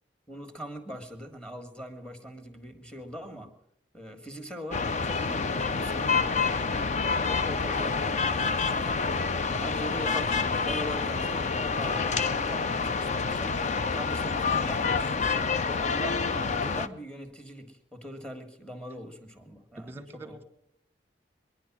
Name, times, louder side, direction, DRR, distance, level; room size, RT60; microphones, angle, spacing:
voice 1, 0.3-3.6 3.9-6.4 7.2-9.1 9.6-13.6 13.9-15.2 15.6-20.4, equal, 5° left, 6 dB, 1.6 m, -41 dB
sound 1, 4.7-16.9, left 4 dB, 40° left, 0.5 m, -28 dB
voice 2, 19.8-20.4, right 2 dB, 15° right, 10 dB, 1.3 m, -44 dB
22.5 x 10.5 x 6.1 m, 0.75 s
head